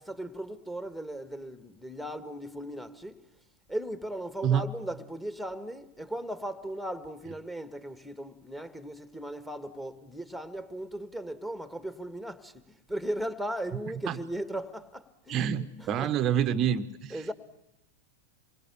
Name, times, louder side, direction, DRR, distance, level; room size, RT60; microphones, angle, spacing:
voice 1, 0.0-3.2 3.7-16.1 17.1-17.3, right 1 dB, 5° left, 1.8 m, -37 dB
voice 2, 15.3-17.3, right 9 dB, 30° right, 1.0 m, -27 dB
28.0 x 23.5 x 8.4 m
figure-of-eight pair, 90°, 0 cm